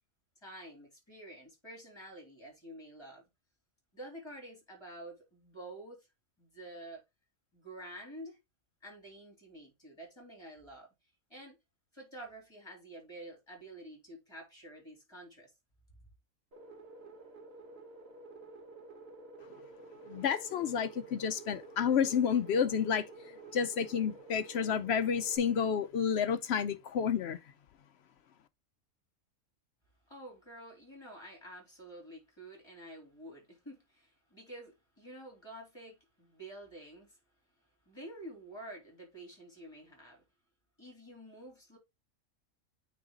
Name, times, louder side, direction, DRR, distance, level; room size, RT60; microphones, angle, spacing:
voice 1, 0.4-3.2 3.9-6.1 6.4-7.0 7.5-8.4 8.8-10.9 11.3-11.6 11.9-15.5 30.1-37.2 37.8-40.2 40.8-41.8, right 1 dB, 20° left, 3.3 m, -49 dB
sound 1, 16.5-25.4, right 3 dB, 50° right, 1.3 m, -51 dB
voice 2, 20.1-23.1 23.5-27.4, left 7 dB, 65° left, 0.7 m, -30 dB
9.1 x 3.2 x 3.7 m
omnidirectional pair, 1.4 m